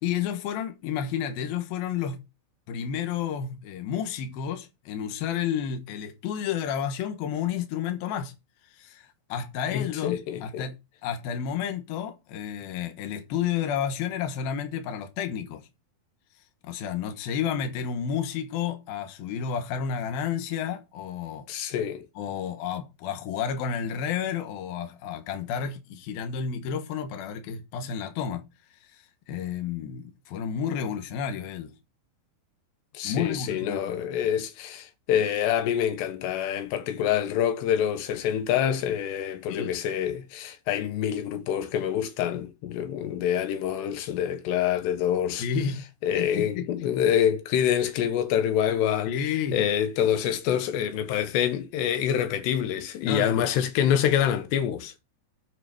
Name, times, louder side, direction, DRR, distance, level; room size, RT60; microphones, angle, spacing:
voice 1, 0.0-2.2 2.7-8.3 8.7-10.8 11.0-15.7 16.6-21.5 22.2-28.4 28.9-31.7 33.0-34.1 39.5-39.7 45.4-45.8 46.1-46.7 49.1-49.6 53.0-53.5, left 8 dB, 70° left, 2.9 m, -31 dB
voice 2, 9.7-10.7 21.5-22.1 32.9-45.5 46.0-49.1 49.5-54.9, left 9 dB, 85° left, 3.2 m, -26 dB
10.5 x 5.0 x 4.9 m
omnidirectional pair, 4.8 m